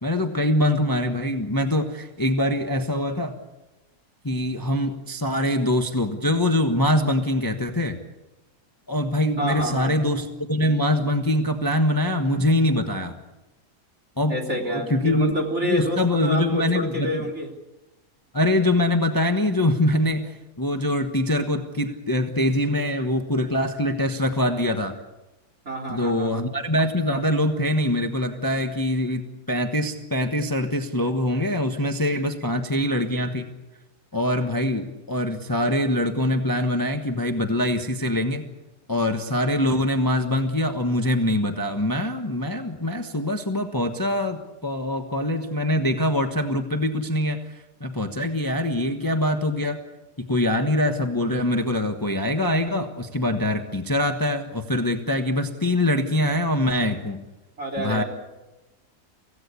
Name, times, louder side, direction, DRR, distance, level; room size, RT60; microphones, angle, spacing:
voice 1, 0.0-3.3 4.2-8.0 8.9-13.2 14.2-14.4 14.7-15.3 15.6-17.2 18.3-24.9 25.9-33.5 34.1-38.5 38.9-49.8 50.2-57.2 57.8-58.0, left 1 dB, 15° left, 5 dB, 1.2 m, -24 dB
voice 2, 9.4-9.9 14.3-17.5 25.7-26.4 57.6-58.0, equal, 45° right, 1 dB, 3.9 m, -28 dB
25.0 x 17.0 x 8.4 m, 1.1 s
omnidirectional pair, 1.7 m